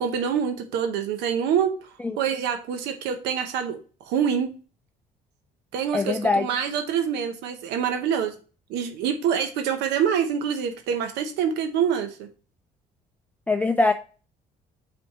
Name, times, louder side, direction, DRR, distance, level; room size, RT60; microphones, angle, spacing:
voice 1, 0.0-3.8 4.1-4.5 5.7-8.4 8.7-12.3, right 8 dB, 90° right, 7 dB, 0.8 m, -26 dB
voice 2, 5.9-6.4 13.5-13.9, left 3 dB, 10° left, 7 dB, 0.4 m, -22 dB
5.5 x 3.5 x 5.5 m, 0.36 s
cardioid pair, 110°, 17 cm